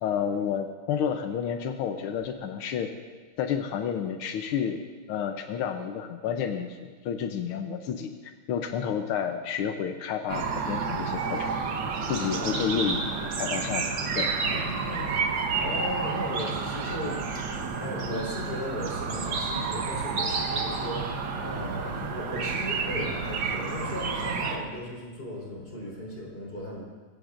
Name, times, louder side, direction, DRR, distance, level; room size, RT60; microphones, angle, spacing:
voice 1, 0.0-2.9 3.4-4.8 5.1-11.5 12.1-13.9 14.2-14.3 22.0-22.1, left 8 dB, 80° left, 6 dB, 1.2 m, -30 dB
sound 1, 10.3-24.6, right 4 dB, 55° right, 1.4 m, -30 dB
voice 2, 12.2-12.5 14.4-15.2 15.6-21.1 21.4-26.8, equal, 20° left, -4 dB, 4.3 m, -36 dB
22.0 x 17.0 x 2.5 m, 1.4 s
omnidirectional pair, 3.3 m